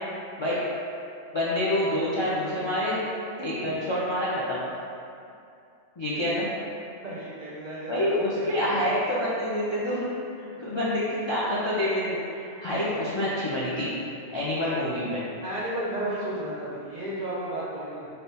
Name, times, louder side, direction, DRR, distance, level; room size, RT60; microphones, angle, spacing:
voice 1, 1.3-3.0 3.4-4.6 6.0-6.5 7.9-13.9 14.3-15.2, left 1 dB, 40° left, -8 dB, 0.4 m, -27 dB
voice 2, 3.4-3.8 7.0-8.8 10.5-10.8 15.4-18.1, right 1 dB, 45° right, -7 dB, 0.6 m, -34 dB
3.4 x 2.7 x 4.2 m, 2.6 s
omnidirectional pair, 1.2 m